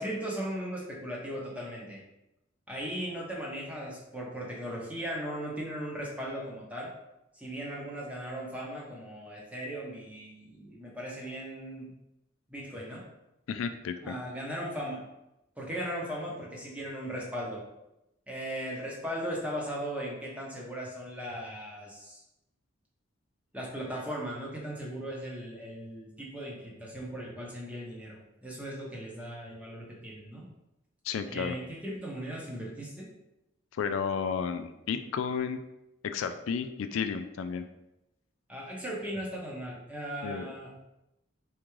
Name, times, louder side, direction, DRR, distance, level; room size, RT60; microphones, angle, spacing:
voice 1, 0.0-2.0 2.7-6.9 7.3-11.9 12.5-13.0 14.0-15.1 15.6-17.6 18.3-22.2 23.5-30.4 31.2-33.1 38.5-40.8, equal, 5° right, -4 dB, 0.8 m, -38 dB
voice 2, 13.5-14.2 31.1-31.6 33.7-35.6 36.0-37.7 40.2-40.5, left 6 dB, 85° left, 9 dB, 0.3 m, -32 dB
3.7 x 3.5 x 3.1 m, 0.90 s
head